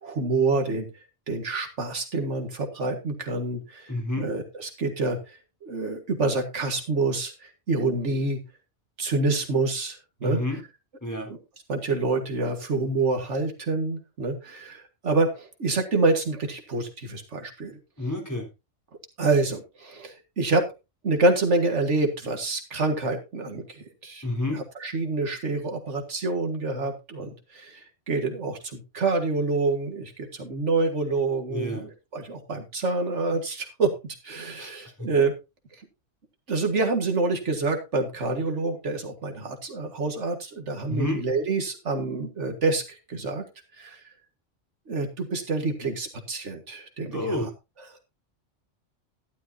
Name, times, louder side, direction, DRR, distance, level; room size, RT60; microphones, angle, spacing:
voice 1, 0.0-0.9 1.3-3.9 4.2-8.4 9.0-10.4 11.3-11.4 11.7-17.8 19.2-20.7 21.0-33.9 34.2-35.3 36.5-43.4 43.8-44.0 44.9-47.5 47.9-48.0, right 3 dB, 70° right, 4 dB, 1.9 m, -27 dB
voice 2, 3.9-4.3 10.2-10.6 11.0-11.3 18.0-18.5 24.2-24.6 31.5-31.9 34.6-35.1 40.9-41.2 47.1-47.5, left 1 dB, 15° left, 1 dB, 3.6 m, -29 dB
12.0 x 11.5 x 2.7 m, 0.26 s
omnidirectional pair, 1.3 m